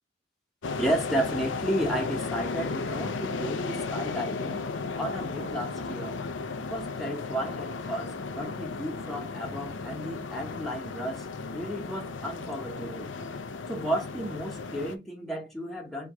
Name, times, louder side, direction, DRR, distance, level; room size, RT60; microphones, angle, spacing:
sound 1, 0.6-15.0, left 4 dB, 85° left, 0.6 m, -35 dB
voice 1, 0.8-4.6 4.9-6.2 6.7-11.2 11.5-13.1 13.7-16.1, right 1 dB, ahead, 1.0 m, -33 dB
4.5 x 3.0 x 3.6 m
head